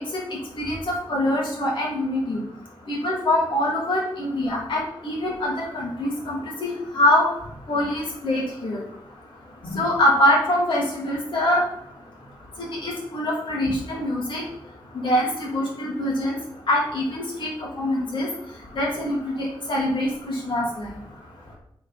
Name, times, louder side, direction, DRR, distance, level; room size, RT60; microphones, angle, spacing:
voice 1, 0.6-2.4 2.9-7.3 7.7-8.8 9.7-11.6 12.8-14.4 15.0-16.3 16.7-17.5 17.8-18.3 18.8-19.3 19.7-20.9, left 1 dB, 65° left, -2 dB, 2.3 m, -24 dB
7.8 x 4.1 x 4.0 m, 0.74 s
wide cardioid pair, 135°, 9 cm